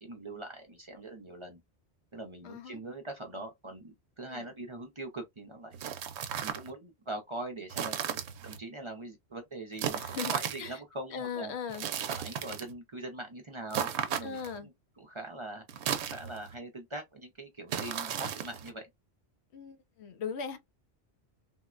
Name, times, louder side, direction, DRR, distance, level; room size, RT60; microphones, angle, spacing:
voice 1, 0.0-1.6 2.1-5.8 6.4-10.0 10.3-11.5 12.1-15.6 16.1-18.9, right 2 dB, 35° right, 0.5 m, -42 dB
voice 2, 2.4-2.8 4.3-4.4 9.9-10.3 10.6-10.8 11.1-11.9 14.2-14.7 19.5-20.6, left 6 dB, 85° left, 0.9 m, -38 dB
sound 1, 5.7-6.7 7.7-8.6 9.8-10.7 11.7-12.7 13.7-14.6 15.7-16.6 17.7-18.7, right 8 dB, 80° right, 0.9 m, -35 dB
3.5 x 2.1 x 2.4 m
omnidirectional pair, 1.1 m